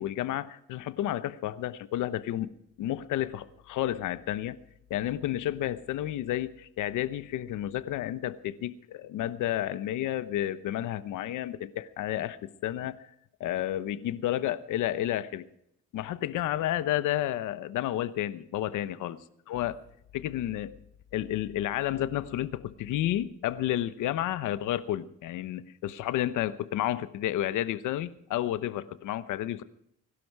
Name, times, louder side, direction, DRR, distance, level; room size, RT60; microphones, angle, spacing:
voice 1, 0.0-2.5 2.8-4.6 4.9-13.0 13.4-15.5 15.9-19.2 19.5-19.8 20.1-20.8 21.1-29.6, left 13 dB, 90° left, 13 dB, 1.0 m, -31 dB
21.5 x 12.0 x 4.8 m, 0.73 s
cardioid pair, 90°, 30 cm